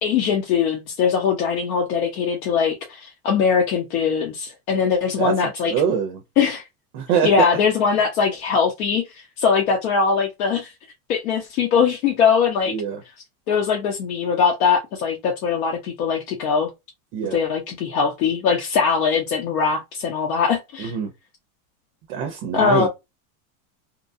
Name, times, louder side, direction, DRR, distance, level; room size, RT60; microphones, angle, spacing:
voice 1, 0.0-5.7 6.4-6.6 7.2-10.7 11.1-12.7 13.5-16.7 17.3-20.9 22.5-22.9, left 6 dB, 90° left, 0.9 m, -21 dB
voice 2, 5.2-6.2 6.9-7.5 12.7-13.0 17.1-17.4 20.8-21.1 22.1-22.9, right 7 dB, 40° right, 0.4 m, -24 dB
2.9 x 2.3 x 2.5 m
supercardioid pair, 165°, 42 cm